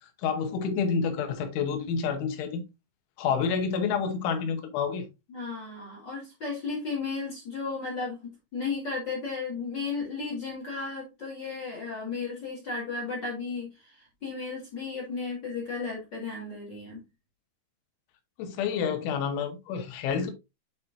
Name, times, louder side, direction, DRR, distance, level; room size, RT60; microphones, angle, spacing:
voice 1, 0.2-2.6 3.2-5.1 18.4-20.3, left 6 dB, 80° left, 3.5 m, -28 dB
voice 2, 5.3-17.0, left 4 dB, 45° left, 1.3 m, -34 dB
9.2 x 4.5 x 2.6 m
omnidirectional pair, 5.4 m